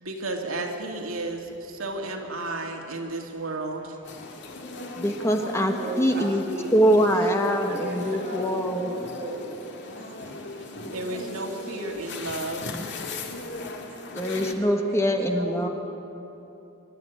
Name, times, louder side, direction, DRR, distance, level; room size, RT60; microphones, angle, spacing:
voice 1, 0.0-4.0 10.0-10.3 10.6-12.7 13.9-14.0, right 2 dB, 85° right, 2 dB, 2.2 m, -33 dB
sound 1, 4.0-14.5, left 2 dB, 55° left, 2.1 m, -38 dB
voice 2, 5.0-6.4 6.7-8.9 14.1-15.7, equal, 15° left, 4 dB, 1.2 m, -23 dB
voice 3, 5.8-9.5 14.9-15.7, right 1 dB, 45° right, 0 dB, 4.1 m, -35 dB
25.5 x 12.5 x 9.4 m, 3.0 s
head